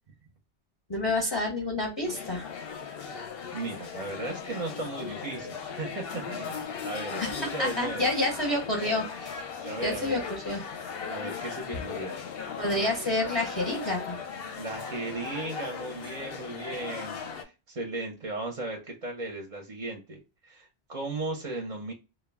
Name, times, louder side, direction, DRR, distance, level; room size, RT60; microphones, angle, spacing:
voice 1, 0.9-2.5 7.2-7.3 7.6-9.4 9.7-10.6 12.6-14.2, left 1 dB, 30° left, -2 dB, 0.7 m, -29 dB
sound 1, 2.0-17.4, left 6 dB, 65° left, 0.7 m, -38 dB
voice 2, 3.5-8.1 9.6-10.2 11.1-12.2 14.6-21.9, right 2 dB, 40° right, 1 dB, 0.6 m, -36 dB
2.3 x 2.2 x 3.2 m, 0.28 s
omnidirectional pair, 1.2 m